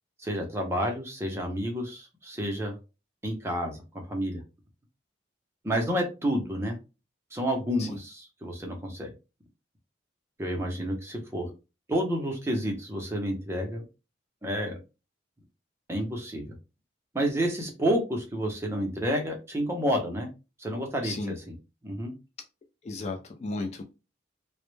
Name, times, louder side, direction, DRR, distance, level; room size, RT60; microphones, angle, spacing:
voice 1, 0.2-2.8 3.2-3.8 4.1-4.4 5.6-6.8 7.3-9.1 10.4-11.5 11.9-13.8 14.4-14.8 15.9-16.5 17.1-20.3 20.6-21.5 21.8-22.1, equal, 15° right, 2 dB, 0.6 m, -30 dB
voice 2, 21.0-21.4 22.8-23.8, left 3 dB, 35° left, 4 dB, 0.3 m, -34 dB
2.1 x 2.1 x 3.1 m, 0.28 s
head